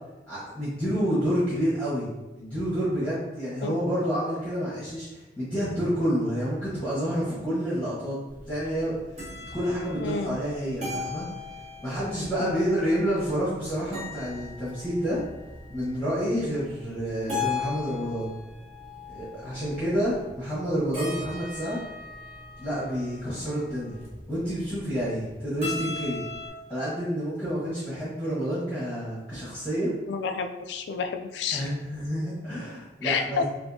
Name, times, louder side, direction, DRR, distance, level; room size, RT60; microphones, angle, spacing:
voice 1, 0.3-2.1 2.3-8.2 8.5-9.0 9.4-11.3 11.8-15.2 15.7-18.3 19.1-21.8 22.6-24.0 24.3-26.2 26.7-29.9 31.5-33.4, equal, 5° left, -12 dB, 1.0 m, -29 dB
sound 1, 8.3-26.5, left 4 dB, 35° right, 1.1 m, -39 dB
voice 2, 10.0-10.4 12.4-12.7 30.1-31.6 33.0-33.4, left 5 dB, 85° left, 7 dB, 0.3 m, -30 dB
3.5 x 2.6 x 2.7 m, 1.1 s
head